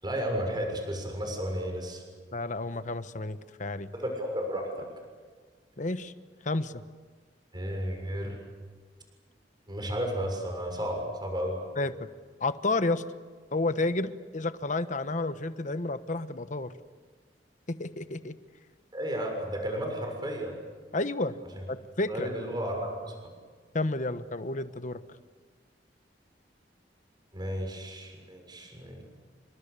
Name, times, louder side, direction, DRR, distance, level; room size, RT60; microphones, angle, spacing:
voice 1, 0.0-2.0 3.9-4.9 7.5-8.4 9.7-11.6 18.9-20.6 21.5-21.6 22.1-23.1 27.3-29.0, equal, 25° right, 2 dB, 6.6 m, -33 dB
voice 2, 2.3-3.9 5.8-6.1 6.4-6.8 11.8-12.1 12.4-13.0 13.5-16.7 17.7-18.3 20.9-21.4 21.7-22.3 23.7-25.0, left 2 dB, 45° left, 11 dB, 1.2 m, -31 dB
29.5 x 25.5 x 6.9 m, 1.5 s
head